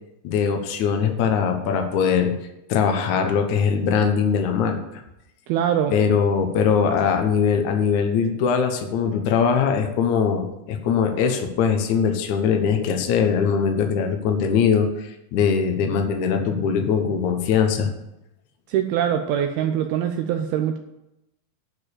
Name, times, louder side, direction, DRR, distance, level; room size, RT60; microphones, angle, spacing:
voice 1, 0.2-2.3 2.7-4.8 5.9-17.9, left 6 dB, 75° left, 5 dB, 1.7 m, -21 dB
voice 2, 5.5-5.9 18.7-20.8, right 9 dB, 80° right, 6 dB, 2.3 m, -23 dB
11.0 x 5.0 x 8.4 m, 0.89 s
omnidirectional pair, 5.0 m